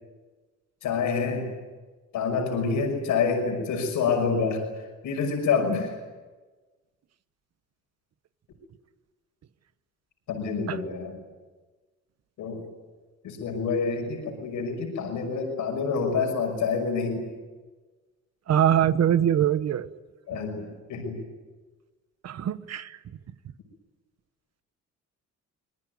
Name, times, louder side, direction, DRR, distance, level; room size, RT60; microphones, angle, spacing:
voice 1, 0.8-1.5 2.1-6.0 10.3-11.2 12.4-12.7 13.2-17.3 20.3-21.2, left 5 dB, 80° left, 3 dB, 6.0 m, -27 dB
voice 2, 18.5-19.9 22.2-23.0, right 10 dB, 60° right, 13 dB, 1.2 m, -23 dB
25.5 x 20.0 x 9.4 m, 1.3 s
cardioid pair, 90°, 30 cm